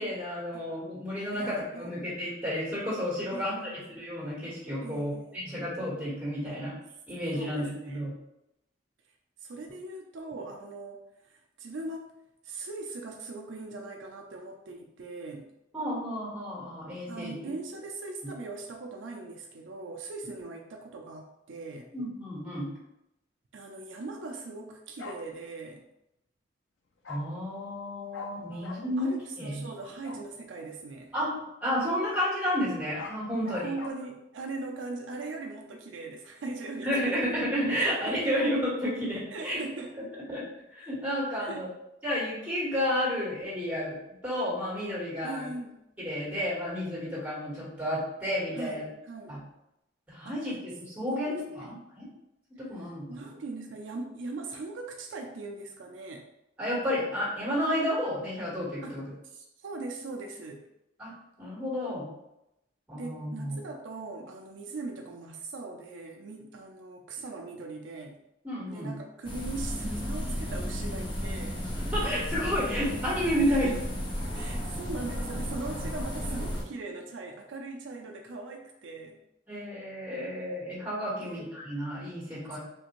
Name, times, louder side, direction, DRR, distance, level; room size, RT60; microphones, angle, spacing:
voice 1, 0.0-6.7 7.1-8.1 15.7-17.3 21.9-22.7 27.1-29.7 31.1-31.3 31.6-33.7 36.8-39.6 39.9-40.0 40.3-40.4 40.7-41.7 42.0-43.9 44.2-45.5 46.0-48.8 49.3-49.4 50.1-52.1 52.6-53.3 56.6-59.1 61.0-61.1 61.4-62.1 62.9-63.6 68.4-69.0 71.9-73.7 79.5-82.6, equal, 5° right, -7 dB, 1.4 m, -31 dB
voice 2, 1.3-1.9 3.3-3.9 4.8-5.4 6.5-6.6 7.3-8.0 9.4-12.1 12.4-15.5 17.1-21.9 23.5-25.8 28.5-31.1 33.3-37.2 37.8-38.4 39.3-40.0 41.4-41.6 45.2-45.8 48.5-49.4 50.2-50.4 51.1-51.7 53.1-56.3 58.8-59.0 59.2-60.6 62.9-68.2 68.7-71.6 73.5-73.8 74.3-79.2 81.2-81.4, right 3 dB, 75° right, 2 dB, 0.4 m, -40 dB
Bark, 25.0-25.2 27.0-27.2 28.1-28.3 28.6-28.8 30.0-30.2 32.7-33.9, left 4 dB, 80° left, 0.5 m, -41 dB
sound 1, 69.2-76.6, equal, 25° left, 0.5 m, -33 dB
3.5 x 2.5 x 3.0 m, 0.86 s
head